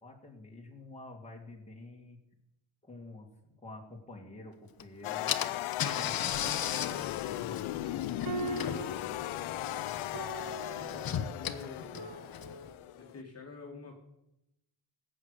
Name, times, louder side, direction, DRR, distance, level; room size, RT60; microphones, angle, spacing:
voice 1, 0.0-2.2 2.8-5.4 5.9-6.7 7.2-8.2, left 2 dB, 15° left, 0 dB, 2.4 m, -49 dB
Car / Engine, 4.8-4.9 5.3-12.7, left 9 dB, 45° left, 0.9 m, -37 dB
sound 1, 5.0-13.2, left 15 dB, 80° left, 0.6 m, -37 dB
sound 2, 8.1-13.1, right 4 dB, 45° right, 1.5 m, -42 dB
voice 2, 10.7-12.1 12.9-13.9, left 4 dB, 30° left, -1 dB, 2.0 m, -47 dB
17.0 x 8.2 x 6.7 m, 0.90 s
cardioid pair, 130°, 48 cm